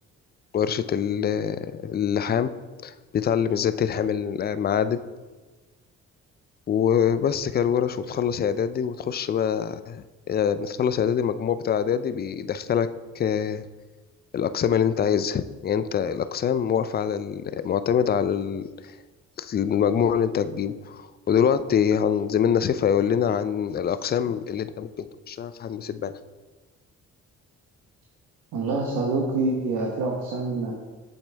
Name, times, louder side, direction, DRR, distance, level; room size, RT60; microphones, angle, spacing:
voice 1, 0.5-2.5 2.8-5.0 6.7-12.9 13.2-13.7 14.3-18.9 19.4-26.2, left 8 dB, 35° left, 13 dB, 0.4 m, -24 dB
voice 2, 28.5-30.7, right 3 dB, 80° right, -1 dB, 1.2 m, -26 dB
8.1 x 6.8 x 3.3 m, 1.3 s
cardioid pair, 90°, 30 cm